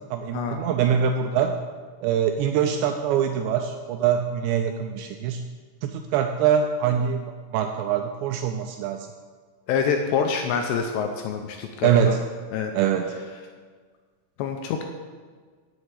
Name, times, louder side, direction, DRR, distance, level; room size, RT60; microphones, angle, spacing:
voice 1, 0.1-1.5 2.0-5.4 5.8-9.0 11.8-12.2 12.7-13.2, right 8 dB, 85° right, 5 dB, 2.6 m, -24 dB
voice 2, 9.7-12.2 12.5-12.7 14.4-14.9, left 6 dB, 80° left, 4 dB, 2.6 m, -26 dB
7.8 x 7.4 x 8.3 m, 1.5 s
omnidirectional pair, 5.5 m